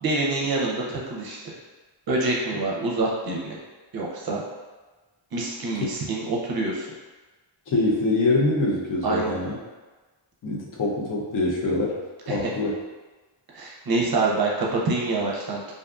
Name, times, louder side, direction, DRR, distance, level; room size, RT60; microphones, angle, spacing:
voice 1, 0.0-1.5 2.1-3.6 3.9-4.4 5.3-6.9 9.0-9.3 12.3-12.5 13.5-15.6, right 3 dB, 50° right, -3 dB, 0.6 m, -26 dB
voice 2, 7.7-9.6 10.4-12.0 12.3-12.8, left 2 dB, 45° left, -2 dB, 0.5 m, -24 dB
2.5 x 2.4 x 2.3 m, 1.3 s
wide cardioid pair, 140°, 46 cm